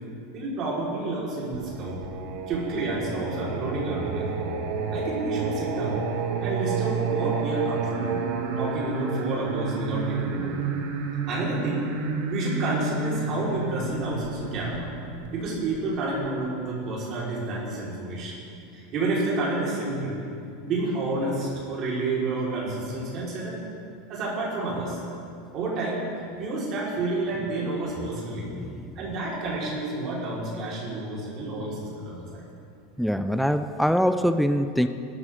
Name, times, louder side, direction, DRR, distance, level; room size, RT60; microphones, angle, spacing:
voice 1, 0.3-2.0 2.5-4.4 4.9-6.1 6.4-8.2 8.6-10.6 11.3-11.8 12.3-14.9 15.3-18.3 18.7-20.2 20.6-23.6 24.1-25.0 25.5-26.0 26.4-28.5 29.0-32.4, right 2 dB, 35° right, -6 dB, 4.5 m, -30 dB
Singing, 1.5-16.3, right 4 dB, 55° right, 1.5 m, -30 dB
voice 2, 28.3-28.9 33.0-34.9, equal, ahead, 9 dB, 0.4 m, -24 dB
21.0 x 12.5 x 3.8 m, 2.5 s
supercardioid pair, 165°, 0 cm